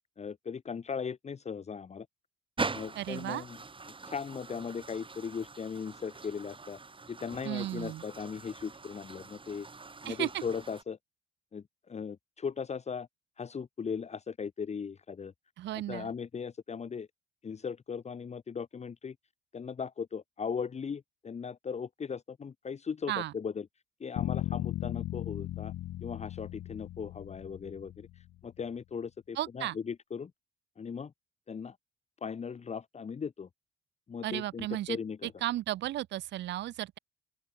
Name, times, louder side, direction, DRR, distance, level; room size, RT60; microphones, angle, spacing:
voice 1, 0.2-2.1 2.7-3.6 4.1-6.8 7.1-9.7 10.0-11.0 11.5-13.1 13.4-15.3 15.9-17.1 17.4-19.1 19.5-23.6 24.0-25.7 26.0-28.1 28.4-30.3 30.8-31.1 31.5-31.8 32.2-33.5 34.1-35.3, left 6 dB, 35° left, 1.2 m, -38 dB
sound 1, 2.6-10.8, right 4 dB, 25° right, 4.9 m, -42 dB
voice 2, 2.9-3.4 7.4-8.0 10.0-10.4 15.6-16.1 23.1-23.3 29.3-29.8 34.2-35.0 35.4-37.0, right 14 dB, 65° right, 0.8 m, -34 dB
sound 2, 24.2-28.3, left 14 dB, 60° left, 0.5 m, -37 dB
open air
supercardioid pair, 75°, 20 cm